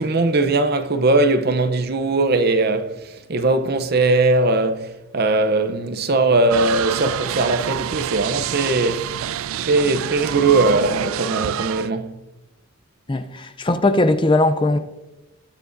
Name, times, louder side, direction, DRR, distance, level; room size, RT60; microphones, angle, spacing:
voice 1, 0.0-9.1 9.6-12.2, right 2 dB, 45° right, 0.7 m, -20 dB
sound 1, 6.5-11.9, right 10 dB, 70° right, 0.3 m, -27 dB
voice 2, 13.1-14.8, left 2 dB, 20° left, 0.5 m, -19 dB
19.0 x 7.2 x 2.6 m
head